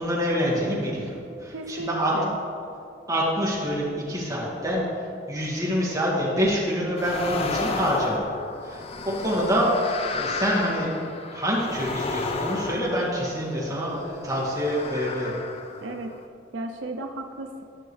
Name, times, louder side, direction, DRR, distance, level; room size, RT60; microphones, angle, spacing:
voice 1, 0.0-2.1 3.1-4.8 5.3-8.2 8.6-10.9 11.3-15.3, equal, 20° right, -6 dB, 1.9 m, -26 dB
voice 2, 1.5-2.4 15.8-16.1 16.5-17.6, right 2 dB, 80° right, 4 dB, 0.5 m, -34 dB
sound 1, 7.0-13.7 14.4-16.3, left 3 dB, 30° left, 0.4 m, -33 dB
12.5 x 6.3 x 3.2 m, 2.5 s
head